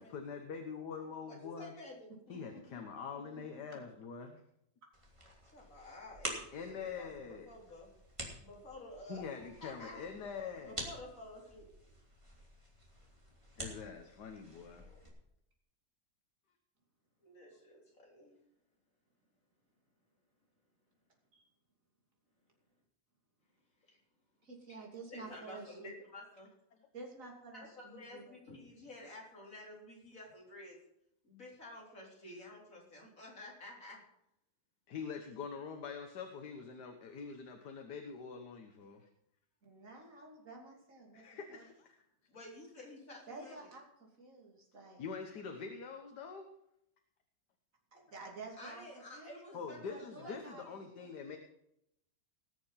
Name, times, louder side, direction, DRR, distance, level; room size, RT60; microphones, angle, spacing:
voice 1, 0.0-1.7 2.3-4.4 6.5-7.5 9.1-10.8 13.6-14.8 34.9-39.1 41.1-42.0 45.0-46.5 49.5-51.4, left 6 dB, 75° left, 4 dB, 1.7 m, -44 dB
voice 2, 1.3-2.1 5.5-7.9 8.4-10.0 10.7-11.9 14.8-15.1 17.2-18.4 23.8-24.0 25.1-26.5 27.5-30.8 31.2-34.0 42.3-43.6 48.6-50.7, left 1 dB, 50° left, -3 dB, 4.2 m, -51 dB
voice 3, 2.5-2.8 3.3-3.4 21.3-21.4 24.4-25.9 26.9-28.4 39.6-41.7 43.3-45.0 47.9-48.9 49.1-51.2, right 3 dB, 50° right, 0 dB, 3.2 m, -51 dB
sound 1, 4.9-15.1, right 1 dB, 15° right, 2.7 m, -48 dB
19.0 x 6.8 x 5.7 m, 0.79 s
omnidirectional pair, 1.8 m